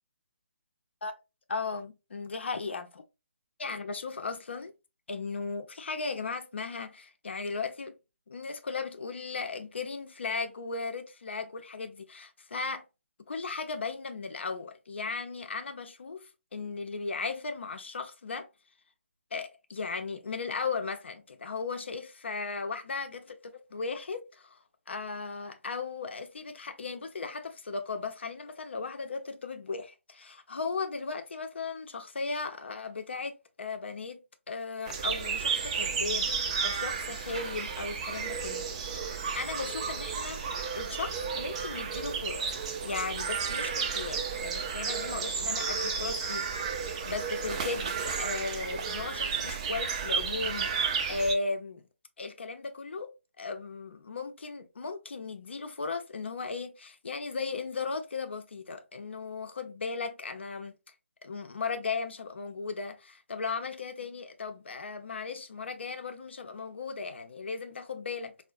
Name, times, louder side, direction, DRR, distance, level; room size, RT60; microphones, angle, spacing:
voice 1, 1.5-3.0 3.6-4.7 5.1-8.0 8.3-12.8 13.3-18.5 19.3-24.6 24.9-34.2 34.5-40.4 40.7-42.5 42.8-46.5 46.9-51.8 52.2-53.1 53.4-60.7 61.2-68.3, left 4 dB, 60° left, 0.5 m, -36 dB
sound 1, 34.9-51.3, right 6 dB, 30° right, 0.4 m, -32 dB
3.7 x 2.1 x 2.5 m
figure-of-eight pair, 145°, 7 cm